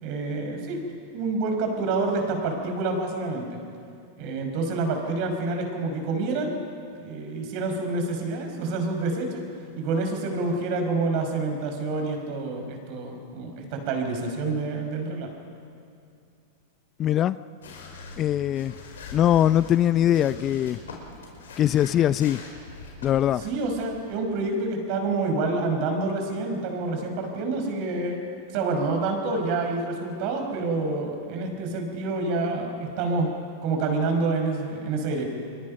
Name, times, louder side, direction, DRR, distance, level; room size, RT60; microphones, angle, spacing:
voice 1, 0.0-0.8 1.1-3.6 4.2-6.5 7.0-9.4 9.8-15.3 23.4-28.2 28.5-33.3 33.6-35.3, right 3 dB, 55° right, 4 dB, 5.3 m, -27 dB
voice 2, 17.0-17.4 18.2-18.7 19.1-20.8 21.6-22.4 23.0-23.4, left 11 dB, 35° left, 16 dB, 0.5 m, -21 dB
sound 1, 17.6-24.2, left 3 dB, 80° left, 5.0 m, -43 dB
29.5 x 22.5 x 5.4 m, 2.4 s
hypercardioid pair, 105°, 0 cm